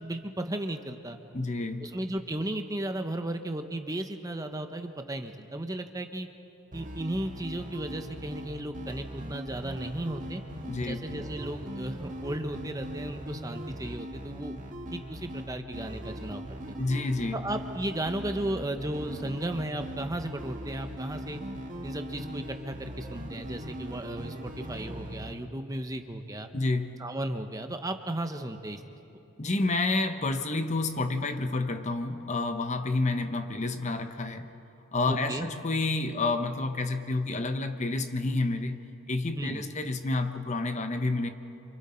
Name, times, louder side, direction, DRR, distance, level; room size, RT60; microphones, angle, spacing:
voice 1, 0.0-1.2 1.8-6.3 6.7-10.4 10.8-14.6 14.9-16.8 17.3-21.4 21.8-26.5 27.0-28.8 35.1-35.5 39.4-39.6, right 1 dB, 15° right, 6 dB, 0.8 m, -35 dB
voice 2, 1.3-1.9 10.7-11.0 16.8-17.5 26.5-27.0 29.4-34.5 34.9-38.8 39.1-41.3, left 2 dB, 35° left, 8 dB, 0.8 m, -29 dB
sound 1, 6.7-25.3, equal, 35° right, 1.6 m, -40 dB
27.5 x 27.0 x 4.4 m, 2.8 s
head